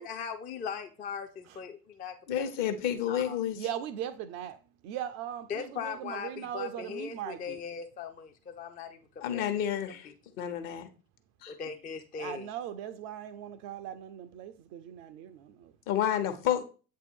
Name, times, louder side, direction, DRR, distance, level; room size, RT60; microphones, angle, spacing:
voice 1, 0.0-2.5 3.1-3.4 5.5-9.0 9.3-9.4 10.1-10.2 11.5-12.5, left 6 dB, 20° left, 0.5 m, -39 dB
voice 2, 2.3-3.6 9.2-10.1 10.4-10.9 11.4-11.5 15.9-16.6, left 10 dB, 55° left, 1.1 m, -30 dB
voice 3, 3.6-4.6 4.8-7.6 12.2-15.7, right 10 dB, 35° right, 0.4 m, -39 dB
8.0 x 2.7 x 4.4 m
figure-of-eight pair, 65°, 47 cm